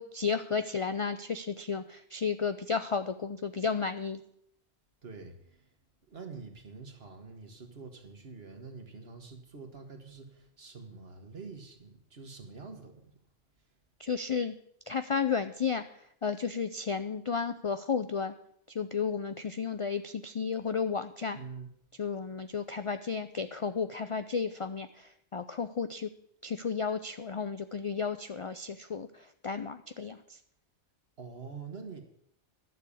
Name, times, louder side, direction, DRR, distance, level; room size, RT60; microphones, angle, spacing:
voice 1, 0.0-4.2 14.0-14.5 14.9-18.3 18.7-21.4 22.0-26.1 26.4-30.4, left 5 dB, 55° left, 10 dB, 0.3 m, -33 dB
voice 2, 5.0-5.6 6.1-13.0 21.3-21.7 31.2-32.0, right 4 dB, 60° right, 5 dB, 1.9 m, -46 dB
11.5 x 6.9 x 8.5 m, 0.71 s
omnidirectional pair, 1.2 m